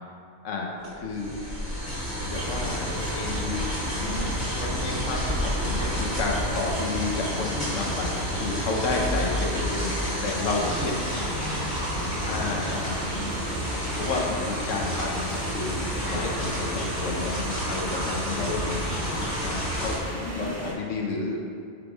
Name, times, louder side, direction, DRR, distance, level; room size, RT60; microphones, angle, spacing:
sound 1, 0.8-20.0, equal, 60° left, 2.3 m, -30 dB
voice 1, 1.0-1.3 2.2-3.7 4.6-11.0 12.3-13.2 14.0-18.6 19.4-19.9 20.3-21.5, left 3 dB, 85° left, -1 dB, 1.2 m, -31 dB
sound 2, 2.3-20.7, equal, 15° right, 1.0 m, -35 dB
voice 2, 3.9-4.3 10.4-13.6 16.0-16.4 18.1-19.3 20.1-20.6, left 2 dB, 30° left, -1 dB, 0.8 m, -38 dB
8.9 x 3.6 x 4.7 m, 2.4 s
omnidirectional pair, 1.3 m